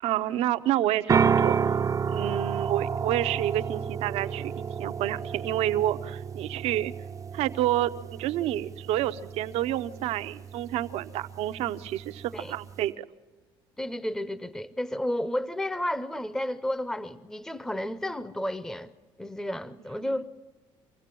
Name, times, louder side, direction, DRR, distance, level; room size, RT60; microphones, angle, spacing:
voice 1, 0.0-1.6 2.1-4.5 4.8-6.9 7.3-13.0 20.0-20.2, right 13 dB, 70° right, 0.7 m, -29 dB
sound 1, 1.1-12.8, right 6 dB, 30° right, 0.6 m, -31 dB
voice 2, 13.8-18.9 19.2-20.3, left 1 dB, 5° left, 0.7 m, -32 dB
25.0 x 16.0 x 7.6 m
supercardioid pair, 85°, 11 cm